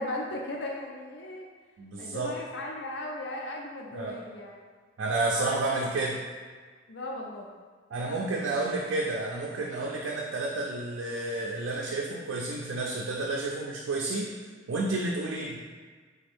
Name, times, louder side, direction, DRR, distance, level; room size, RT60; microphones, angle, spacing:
voice 1, 0.0-1.5 2.0-4.6 5.3-6.0 6.9-7.5 8.0-8.5, left 1 dB, 65° left, -1 dB, 0.4 m, -37 dB
voice 2, 1.8-2.4 3.9-4.2 5.0-6.2 7.9-14.3 14.7-15.6, right 2 dB, 90° right, -2 dB, 0.4 m, -30 dB
3.4 x 2.6 x 3.4 m, 1.5 s
head